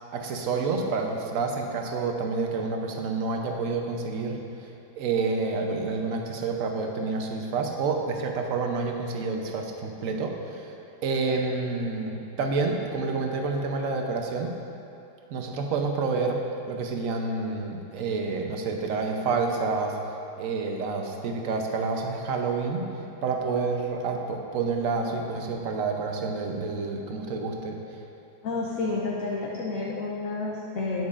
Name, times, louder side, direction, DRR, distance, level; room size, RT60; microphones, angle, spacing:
voice 1, 0.1-4.7 5.0-10.7 11.0-14.5 15.3-16.4 16.7-20.0 20.4-22.9 23.2-27.8, right 4 dB, 60° right, 2 dB, 1.1 m, -28 dB
voice 2, 28.4-31.1, left 3 dB, 60° left, -3 dB, 1.2 m, -30 dB
12.0 x 9.2 x 2.5 m, 2.7 s
omnidirectional pair, 1.8 m